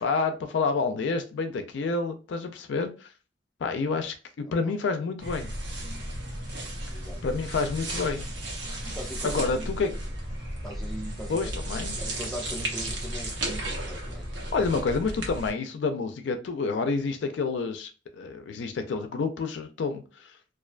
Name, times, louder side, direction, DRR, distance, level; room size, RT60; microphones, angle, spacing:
voice 1, 0.0-3.1 3.6-5.5 7.2-8.3 9.2-9.9 11.3-11.9 14.5-20.0, left 4 dB, 70° left, 0.4 m, -28 dB
voice 2, 4.4-4.7 6.9-7.2 8.8-10.0 10.6-11.4 12.0-14.3, equal, ahead, 0.4 m, -40 dB
sound 1, 5.2-15.5, right 1 dB, 80° right, 0.7 m, -34 dB
2.4 x 2.2 x 2.4 m
head